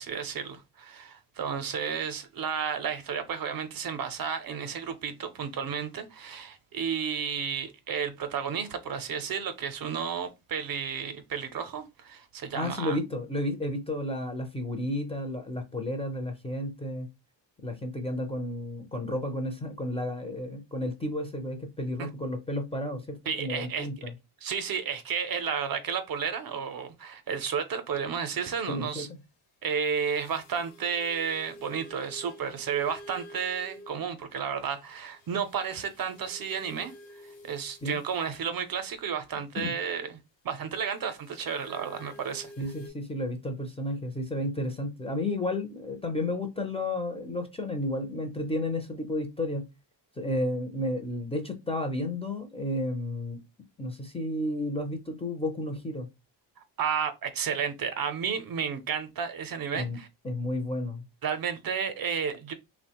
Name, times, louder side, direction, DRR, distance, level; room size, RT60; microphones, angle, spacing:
voice 1, 0.0-13.0 22.0-22.1 23.3-23.9 24.4-29.1 29.6-36.9 37.4-40.2 40.4-42.5 56.8-60.1 61.2-62.5, right 7 dB, 50° right, 0.5 m, -32 dB
voice 2, 12.5-17.1 17.6-24.1 28.7-29.2 37.8-38.0 39.6-39.7 42.6-49.7 50.2-53.4 53.8-56.1 59.7-60.0 60.2-61.0, left 1 dB, 15° left, 0.4 m, -32 dB
sound 1, 29.9-34.1 34.7-38.4 40.9-42.9, equal, 85° left, 1.0 m, -50 dB
2.8 x 2.1 x 2.8 m
cardioid pair, 100°, 46 cm